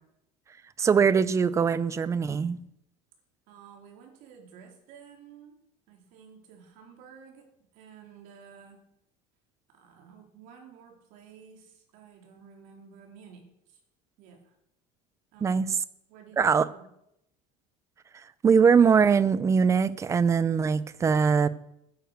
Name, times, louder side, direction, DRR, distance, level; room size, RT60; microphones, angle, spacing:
voice 1, 0.8-2.6 15.4-15.7 16.4-16.7 18.4-21.5, right 6 dB, 20° right, 0.6 m, -22 dB
voice 2, 3.5-5.6 5.9-7.4 7.7-8.8 9.7-13.8 14.2-14.5 15.3-15.6 16.1-16.8, right 7 dB, 65° right, 4.0 m, -52 dB
12.5 x 10.0 x 6.6 m
cardioid pair, 150°, 14 cm